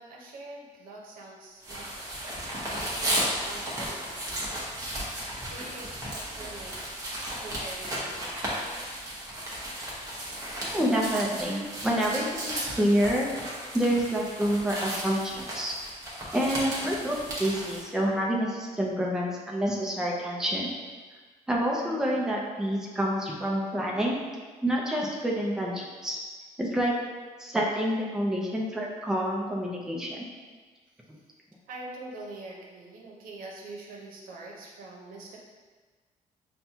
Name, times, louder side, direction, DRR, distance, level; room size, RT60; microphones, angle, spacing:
voice 1, 0.0-2.1 2.8-4.3 5.5-8.9 31.7-35.4, right 2 dB, 85° right, -2 dB, 0.8 m, -44 dB
sound 1, 1.6-17.8, right 1 dB, 25° right, 1.0 m, -35 dB
voice 2, 10.6-13.3 13.7-15.7 16.3-20.7 21.5-24.2 24.6-26.2 26.6-26.9 27.4-30.3, equal, 5° right, -3 dB, 0.5 m, -28 dB
5.7 x 2.2 x 2.8 m, 1.4 s
cardioid pair, 135°, 14 cm